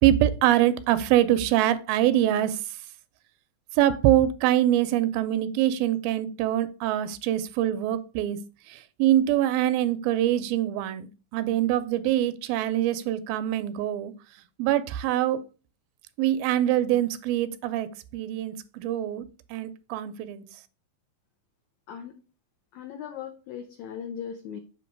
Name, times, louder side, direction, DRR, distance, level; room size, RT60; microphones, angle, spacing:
voice 1, 0.0-2.8 3.7-8.4 8.7-14.1 14.6-15.4 16.2-20.4, right 12 dB, 90° right, 2.4 m, -24 dB
voice 2, 21.9-22.2 22.7-24.6, left 8 dB, 85° left, 1.6 m, -38 dB
7.7 x 3.1 x 5.2 m
omnidirectional pair, 4.1 m